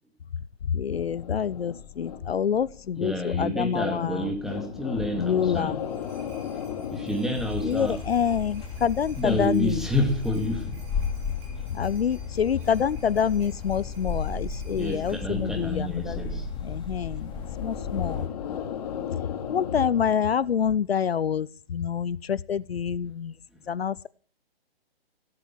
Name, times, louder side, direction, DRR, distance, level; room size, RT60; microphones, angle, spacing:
voice 1, 0.6-4.3 5.1-5.8 7.6-9.8 11.7-16.2 16.6-17.3 17.6-18.3 19.5-23.4 23.7-24.1, left 7 dB, 75° left, 0.7 m, -27 dB
sound 1, 0.9-8.2 8.5-10.9 11.4-14.2 14.7-20.8, left 8 dB, 40° left, 2.4 m, -39 dB
voice 2, 3.0-5.8 6.9-8.0 9.2-10.8 14.7-16.5, left 1 dB, ahead, 2.5 m, -29 dB
sound 2, 5.5-15.2, right 3 dB, 20° right, 7.9 m, -55 dB
sound 3, 7.4-18.3, left 5 dB, 15° left, 3.0 m, -35 dB
17.0 x 9.9 x 7.6 m
figure-of-eight pair, 140°, 31 cm